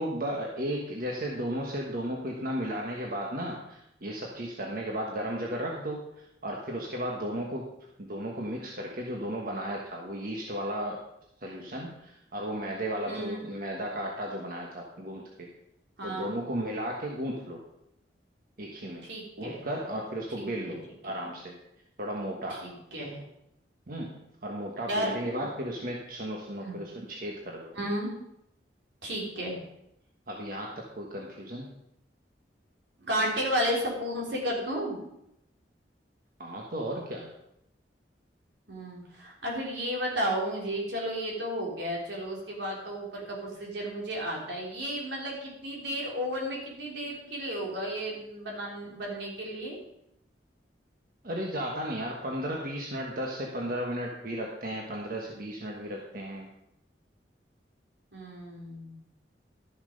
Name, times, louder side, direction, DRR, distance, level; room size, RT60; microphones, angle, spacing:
voice 1, 0.0-7.7 8.0-11.0 11.4-15.5 16.0-17.6 18.6-19.1 19.4-21.6 22.0-22.6 23.9-24.1 24.4-27.7 30.3-31.7 36.4-37.3 51.2-56.5, equal, 55° right, -1 dB, 1.3 m, -34 dB
voice 2, 13.1-13.4 16.0-16.4 19.0-19.6 20.4-20.7 22.6-23.3 24.9-25.1 26.6-26.7 27.7-28.1 29.0-29.6 33.0-35.0 38.7-49.8 58.1-59.0, equal, 80° right, -2 dB, 3.6 m, -33 dB
12.5 x 7.1 x 5.2 m, 0.81 s
head